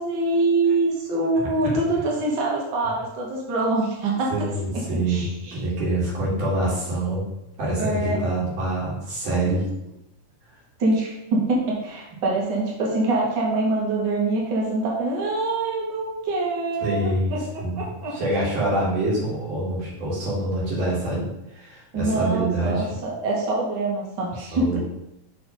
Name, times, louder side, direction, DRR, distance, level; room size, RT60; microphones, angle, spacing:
voice 1, 0.0-4.3 5.1-5.6 7.8-8.2 10.8-17.4 17.8-18.2 21.9-24.8, right 2 dB, 40° right, -3 dB, 2.0 m, -24 dB
voice 2, 4.3-7.2 7.6-9.7 12.1-12.3 16.8-23.0 24.5-24.8, right 1 dB, 75° right, -7 dB, 3.9 m, -26 dB
6.3 x 5.9 x 5.2 m, 0.88 s
omnidirectional pair, 3.6 m